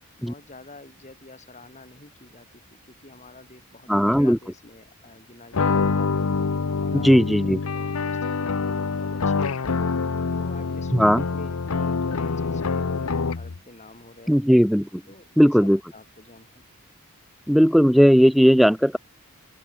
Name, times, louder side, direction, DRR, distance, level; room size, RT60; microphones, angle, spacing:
voice 1, 0.2-6.1 6.7-7.2 7.6-9.8 10.4-14.4 15.1-16.7, left 2 dB, 35° left, 3.2 m, -47 dB
voice 2, 3.9-4.4 7.0-7.6 10.9-11.2 14.3-14.9 15.4-15.8 17.5-19.0, equal, ahead, 0.3 m, -17 dB
sound 1, 5.5-13.6, left 4 dB, 80° left, 0.7 m, -25 dB
open air
head